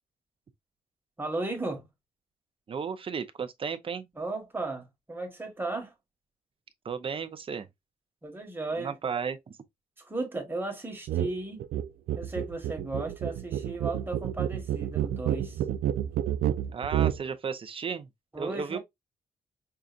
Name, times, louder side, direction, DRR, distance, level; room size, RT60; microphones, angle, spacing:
voice 1, 1.2-1.9 4.2-5.9 8.2-8.9 10.0-11.6 12.2-15.6 18.3-18.8, right 2 dB, 15° right, 1.3 m, -35 dB
voice 2, 2.7-4.1 6.8-7.7 8.8-9.6 16.7-18.1 18.4-18.8, right 6 dB, 35° right, 0.6 m, -34 dB
sound 1, 11.1-11.3 11.6-17.2, right 11 dB, 85° right, 0.4 m, -29 dB
5.5 x 2.5 x 2.4 m
cardioid pair, 130°, 15 cm